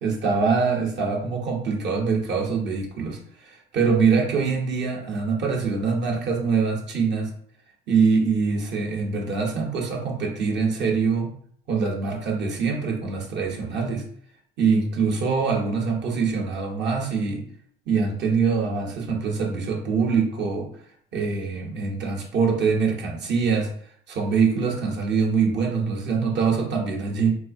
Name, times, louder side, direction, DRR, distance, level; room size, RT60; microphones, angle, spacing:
voice 1, 0.0-7.3 7.9-11.3 11.7-14.0 14.6-17.4 17.9-20.7 21.1-23.7 24.1-27.3, right 5 dB, 60° right, -1 dB, 0.9 m, -24 dB
4.0 x 2.4 x 2.6 m, 0.62 s
cardioid pair, 100°, 21 cm